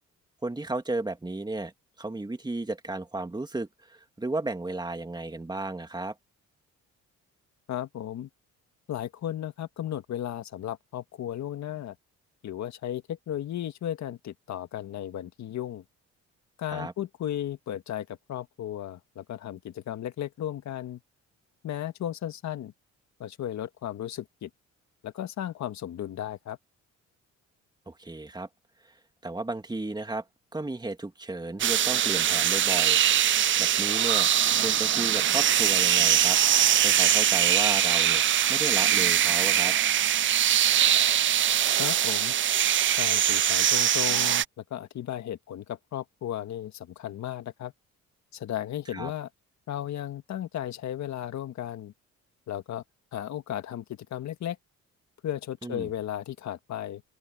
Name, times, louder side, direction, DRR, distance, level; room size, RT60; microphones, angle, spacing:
voice 1, 0.4-1.7 2.0-6.1 16.7-16.9 27.9-28.5 29.2-30.2 30.5-33.0 33.6-34.3 34.6-36.4 36.8-39.7 48.9-49.1 55.6-55.9, right 2 dB, 15° right, 2.2 m, -34 dB
voice 2, 7.7-8.3 8.9-11.9 12.4-15.8 16.6-21.0 21.6-22.7 23.2-24.5 25.0-26.6 41.7-42.3 42.9-47.7 48.3-49.3 49.7-51.9 52.5-52.8 53.1-54.6 55.2-57.0, left 11 dB, 65° left, 1.7 m, -35 dB
sound 1, 31.6-44.4, right 10 dB, 40° right, 0.5 m, -22 dB
open air
cardioid pair, 90°, 30 cm